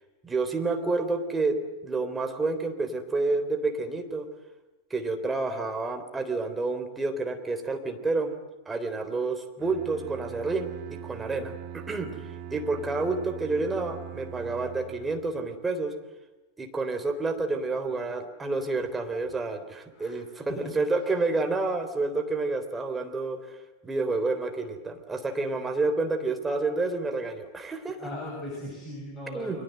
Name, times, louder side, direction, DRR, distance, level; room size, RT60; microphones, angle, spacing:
voice 1, 0.2-1.6 1.8-4.3 4.9-8.3 8.7-10.7 11.0-12.1 12.5-15.9 16.6-23.6 23.8-28.0 29.3-29.6, right 3 dB, 10° right, 6 dB, 3.6 m, -29 dB
Bowed string instrument, 9.6-15.5, right 9 dB, 40° right, 2.7 m, -41 dB
voice 2, 28.0-29.6, left 1 dB, 20° left, -1 dB, 7.0 m, -38 dB
29.5 x 23.5 x 7.9 m, 1.1 s
figure-of-eight pair, 90°, 0 cm